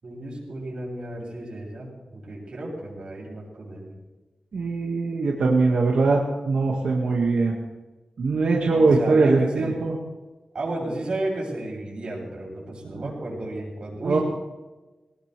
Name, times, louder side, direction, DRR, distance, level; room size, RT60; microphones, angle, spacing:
voice 1, 0.0-4.0 8.7-9.8 10.5-14.2, right 1 dB, 50° right, -3 dB, 7.5 m, -33 dB
voice 2, 4.5-7.5 8.2-10.0 12.8-13.1 14.0-14.2, right 3 dB, 85° right, -2 dB, 2.0 m, -21 dB
21.0 x 19.5 x 3.5 m, 1.2 s
wide cardioid pair, 140°, 2 cm